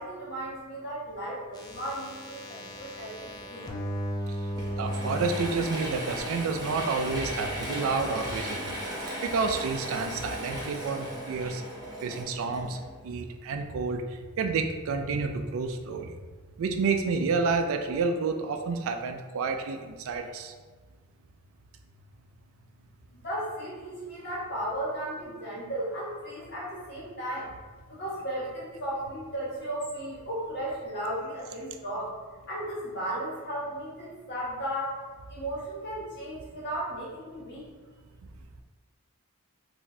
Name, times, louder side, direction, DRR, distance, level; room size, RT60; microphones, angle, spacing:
voice 1, 0.0-3.7 23.1-27.5 27.9-32.1 32.5-35.0 35.3-37.7, right 1 dB, 50° left, -7 dB, 1.3 m, -35 dB
sound 1, 1.5-5.5 6.2-6.3, equal, 20° left, 0.3 m, -36 dB
Mechanisms / Drill, 4.5-13.2, equal, 20° right, 0.7 m, -36 dB
voice 2, 4.8-8.7 9.2-11.6 12.0-12.8 13.0-14.0 14.4-16.1 16.6-20.5, right 4 dB, 65° right, 6 dB, 0.3 m, -29 dB
3.9 x 2.6 x 2.2 m, 1.4 s
head